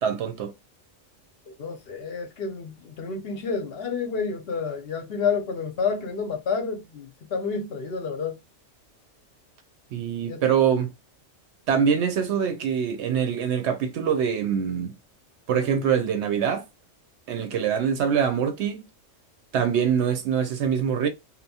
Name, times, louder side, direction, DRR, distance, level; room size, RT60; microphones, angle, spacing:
voice 1, 0.0-0.5 9.9-10.9 11.7-14.9 15.5-16.6 17.3-18.9 19.5-21.1, right 7 dB, 70° right, 0.8 m, -24 dB
voice 2, 1.6-8.4 10.3-10.4, left 5 dB, 60° left, 0.7 m, -29 dB
2.8 x 2.0 x 2.7 m
omnidirectional pair, 1.3 m